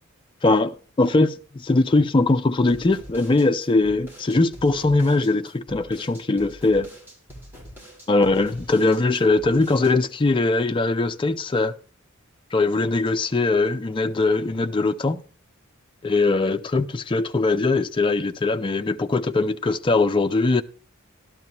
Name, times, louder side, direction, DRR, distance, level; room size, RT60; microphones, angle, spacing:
voice 1, 0.4-6.9 8.1-11.7 12.5-15.2 16.0-20.6, left 3 dB, 25° left, 0.4 m, -21 dB
sound 1, 2.7-9.9, equal, 10° right, 2.2 m, -44 dB
12.0 x 12.0 x 2.9 m
head